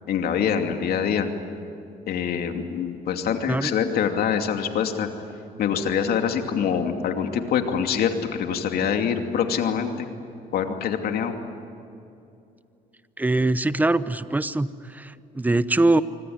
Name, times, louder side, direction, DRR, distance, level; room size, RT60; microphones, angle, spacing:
voice 1, 0.1-1.3 2.1-5.1 5.6-10.1 10.5-11.4, left 7 dB, 65° left, 5 dB, 2.7 m, -25 dB
voice 2, 13.2-16.0, right 2 dB, 10° right, 14 dB, 0.9 m, -22 dB
25.0 x 25.0 x 9.5 m, 2.6 s
cardioid pair, 110°, 17 cm